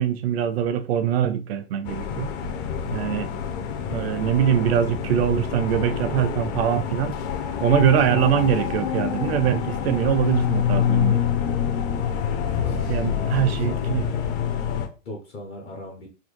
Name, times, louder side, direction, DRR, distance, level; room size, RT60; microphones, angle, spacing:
voice 1, 0.0-2.3 2.9-3.3 3.9-7.1 7.6-11.2 12.6-14.2, right 9 dB, 50° right, 0.4 m, -23 dB
sound 1, 1.8-14.9, left 8 dB, 45° left, 0.7 m, -26 dB
voice 2, 12.4-14.0 15.0-16.1, left 1 dB, 15° left, 0.4 m, -39 dB
4.2 x 2.2 x 3.0 m
hypercardioid pair, 145°, 39 cm